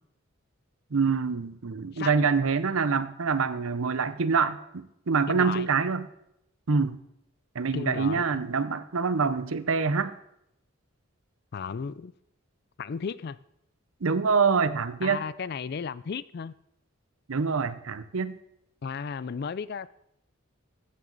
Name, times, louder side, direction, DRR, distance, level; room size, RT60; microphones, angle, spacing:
voice 1, 0.9-6.1 6.7-7.0 7.5-10.1 14.0-15.2 17.3-18.4, right 5 dB, 70° right, 0.7 m, -26 dB
voice 2, 5.3-5.7 7.7-8.5 11.5-12.1 12.8-13.4 15.0-16.5 18.8-19.9, left 6 dB, 45° left, 0.3 m, -34 dB
14.5 x 9.2 x 4.0 m
head